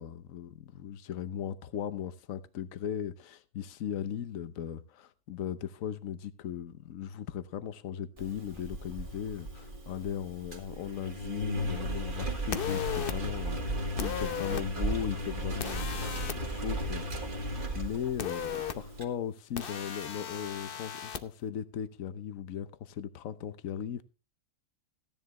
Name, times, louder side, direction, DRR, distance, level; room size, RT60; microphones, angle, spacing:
voice 1, 0.0-24.0, left 9 dB, 65° left, 1.2 m, -38 dB
Engine, 8.2-19.0, equal, 35° right, 2.0 m, -36 dB
sound 1, 12.5-13.1 14.0-14.6 15.6-16.4 18.2-18.7 19.6-21.2, left 8 dB, 50° left, 0.8 m, -36 dB
15.0 x 10.5 x 3.1 m
omnidirectional pair, 1.5 m